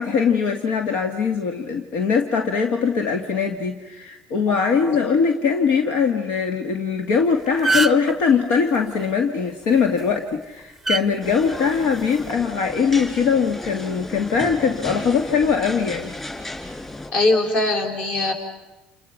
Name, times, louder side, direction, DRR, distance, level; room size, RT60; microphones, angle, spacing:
voice 1, 0.0-16.1, left 6 dB, 80° left, 4 dB, 2.1 m, -21 dB
voice 2, 4.5-5.0 17.1-18.3, left 2 dB, 45° left, 3 dB, 5.7 m, -22 dB
sound 1, 7.1-7.2 7.5-8.1 9.8-10.0 10.9-11.0 12.1-12.3, right 3 dB, ahead, 0.8 m, -21 dB
sound 2, 11.2-17.1, left 2 dB, 15° left, 4.1 m, -34 dB
30.0 x 29.0 x 5.9 m, 1.0 s
cardioid pair, 135°, 3 cm